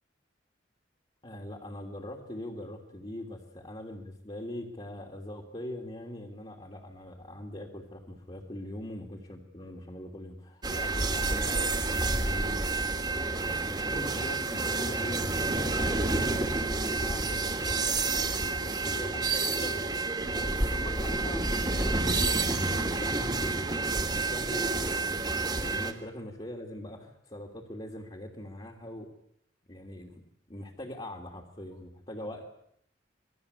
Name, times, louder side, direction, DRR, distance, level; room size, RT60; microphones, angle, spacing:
voice 1, 1.2-13.3 13.6-18.2 18.5-29.1 29.7-30.2 30.5-32.5, left 1 dB, 30° left, 1 dB, 3.0 m, -42 dB
sound 1, 10.6-25.9, right 3 dB, 25° right, 2.5 m, -29 dB
27.5 x 21.0 x 8.4 m, 0.71 s
head